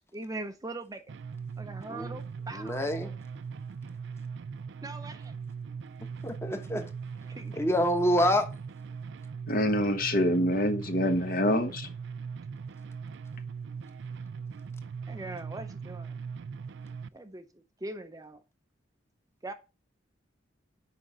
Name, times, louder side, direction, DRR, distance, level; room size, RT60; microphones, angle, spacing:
voice 1, 0.1-1.0 1.6-3.1 4.8-5.3 7.2-7.7 15.1-16.2 17.1-18.4 19.4-19.5, right 2 dB, 20° right, 0.6 m, -41 dB
sound 1, 1.1-17.1, right 5 dB, 70° right, 0.4 m, -40 dB
voice 2, 2.5-3.1 6.2-6.8 7.6-8.5, equal, 15° left, 1.2 m, -27 dB
voice 3, 9.5-11.9, left 1 dB, 50° left, 1.3 m, -26 dB
6.3 x 5.2 x 6.0 m
head